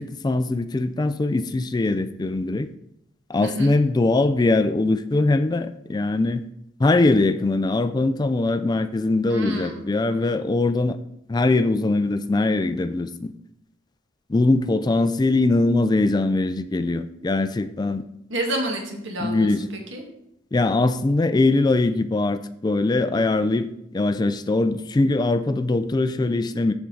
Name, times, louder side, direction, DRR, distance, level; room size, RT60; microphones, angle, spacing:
voice 1, 0.0-2.7 3.3-6.4 6.8-11.0 11.3-13.3 14.3-18.0 19.2-19.7 20.5-23.7 23.9-26.7, left 2 dB, 20° left, 12 dB, 0.3 m, -21 dB
voice 2, 3.3-3.7 9.3-9.8 18.3-20.0, right 1 dB, 70° right, 1 dB, 1.8 m, -29 dB
13.5 x 4.5 x 3.8 m, 0.80 s
head